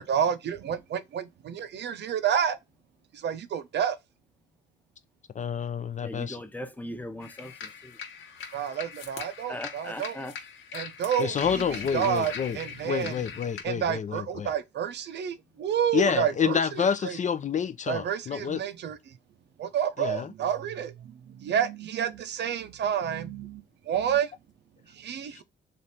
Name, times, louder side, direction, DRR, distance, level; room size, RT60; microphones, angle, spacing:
voice 1, 0.0-2.6 3.2-4.0 8.5-10.2 10.7-11.4 11.9-13.1 13.6-16.6 17.0-17.1 17.9-19.0 19.6-20.9 21.3-23.6 23.9-24.3 25.0-25.4, right 8 dB, 60° right, 0.6 m, -29 dB
voice 2, 5.3-6.4 11.2-12.6 12.8-14.5 15.9-18.6 20.0-20.3 25.3-25.4, left 7 dB, 40° left, 0.4 m, -28 dB
voice 3, 6.0-7.5 9.5-10.3, left 1 dB, 10° left, 0.8 m, -38 dB
sound 1, 7.2-13.6, left 6 dB, 80° left, 1.2 m, -41 dB
3.3 x 2.5 x 4.1 m
cardioid pair, 90°, 20 cm